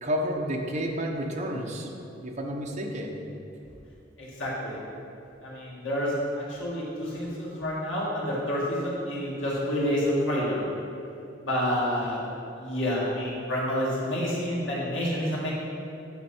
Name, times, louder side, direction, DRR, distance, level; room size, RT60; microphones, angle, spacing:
voice 1, 0.0-1.9 2.2-3.1, equal, 40° right, 1 dB, 1.0 m, -30 dB
voice 2, 4.2-4.8 5.4-10.6 11.4-12.2 12.6-15.5, equal, 80° left, -6 dB, 2.2 m, -28 dB
9.8 x 6.3 x 4.5 m, 2.7 s
head